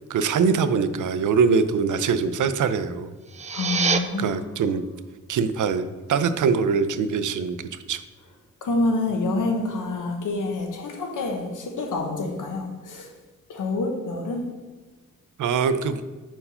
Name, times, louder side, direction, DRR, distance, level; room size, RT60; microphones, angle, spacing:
voice 1, 0.1-3.1 4.2-4.8 5.3-7.6 7.9-8.0 15.4-16.0, right 5 dB, 70° right, 11 dB, 0.5 m, -23 dB
sound 1, 3.2-4.0, right 5 dB, 25° right, 0.4 m, -25 dB
voice 2, 3.5-4.4 8.6-13.1 13.5-14.4, left 2 dB, 75° left, 3 dB, 1.2 m, -27 dB
5.5 x 4.5 x 5.5 m, 1.2 s
cardioid pair, 90°, 31 cm